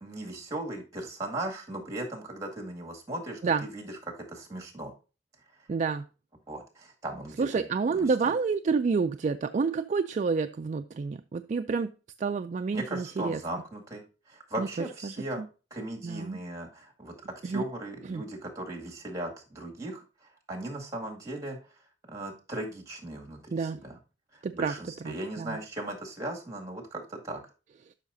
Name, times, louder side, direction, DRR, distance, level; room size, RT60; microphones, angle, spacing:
voice 1, 0.0-3.9 4.3-4.9 6.5-7.7 8.0-8.1 12.7-14.0 14.3-15.4 15.7-17.2 17.4-20.0 20.5-21.6 22.1-24.0 24.5-27.4, right 1 dB, 20° right, 2.1 m, -37 dB
voice 2, 5.7-6.0 7.4-11.9 12.2-13.4 14.6-14.7 15.0-15.5 16.0-16.4 17.4-17.6 18.0-18.2 23.5-23.8 24.4-24.7 25.0-25.6, right 5 dB, 40° right, 0.3 m, -29 dB
12.0 x 5.7 x 2.7 m
head